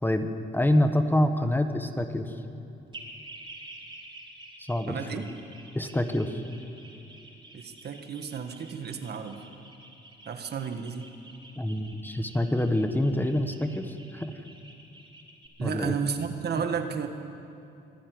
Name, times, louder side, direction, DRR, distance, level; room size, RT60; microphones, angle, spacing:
voice 1, 0.0-2.3 4.6-5.3 5.7-6.4 11.6-14.3 15.6-15.9, left 1 dB, 10° left, 7 dB, 1.4 m, -26 dB
sound 1, 2.9-15.5, right 2 dB, 25° right, 4.2 m, -49 dB
voice 2, 4.9-5.3 7.5-9.4 10.2-11.1 15.6-17.1, right 6 dB, 55° right, 6 dB, 1.7 m, -32 dB
25.5 x 11.0 x 9.6 m, 2.7 s
cardioid pair, 90°, 20 cm